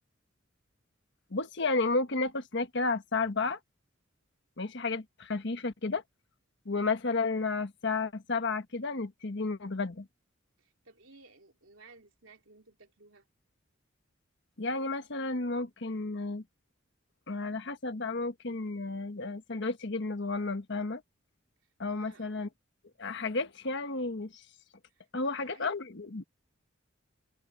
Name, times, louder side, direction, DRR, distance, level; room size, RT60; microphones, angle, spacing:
voice 1, 1.3-3.6 4.6-6.0 6.6-10.1 14.6-16.4 17.3-21.0 21.8-22.5 23.0-24.4 25.1-26.2, left 3 dB, 65° left, 1.3 m, -32 dB
voice 2, 10.6-13.3 21.9-22.3 24.9-25.7, right 3 dB, 75° right, 3.3 m, -56 dB
head